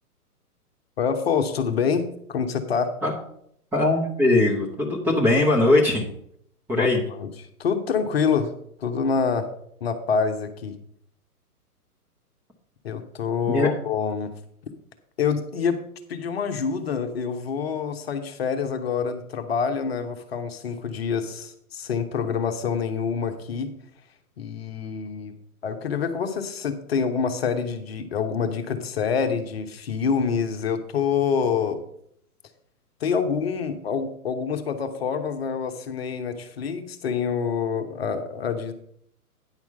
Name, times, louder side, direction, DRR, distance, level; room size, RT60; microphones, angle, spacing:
voice 1, 1.0-2.9 6.8-6.9 7.2-7.3 7.6-8.5 8.8-9.5 9.8-10.8 12.8-14.3 15.2-15.8 16.1-23.7 24.4-25.3 25.6-31.8 33.0-38.7, left 6 dB, 40° left, 7 dB, 1.0 m, -26 dB
voice 2, 3.7-6.0 6.7-7.0 13.5-13.7, left 2 dB, 5° right, -3 dB, 0.8 m, -20 dB
9.8 x 6.0 x 5.4 m, 0.70 s
figure-of-eight pair, 120°, 46 cm